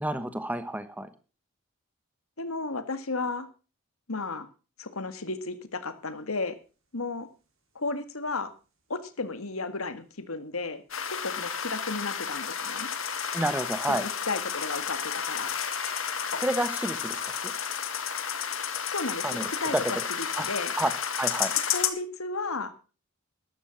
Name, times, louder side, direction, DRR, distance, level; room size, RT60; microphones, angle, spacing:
voice 1, 0.0-1.1 13.3-14.0 16.4-17.2 19.2-19.8 20.4-20.5 20.8-20.9 21.2-21.5, right 1 dB, 5° right, 11 dB, 1.2 m, -29 dB
voice 2, 2.4-3.5 4.1-4.5 4.8-6.6 6.9-7.3 7.8-8.5 8.9-10.8 11.1-12.9 13.9-15.6 18.9-20.7 21.7-22.7, left 3 dB, 90° left, 11 dB, 1.9 m, -33 dB
sound 1, 10.9-21.9, left 7 dB, 70° left, 2.0 m, -31 dB
sound 2, 13.2-19.7, right 3 dB, 70° right, 4.6 m, -53 dB
13.5 x 12.0 x 5.9 m, 0.36 s
head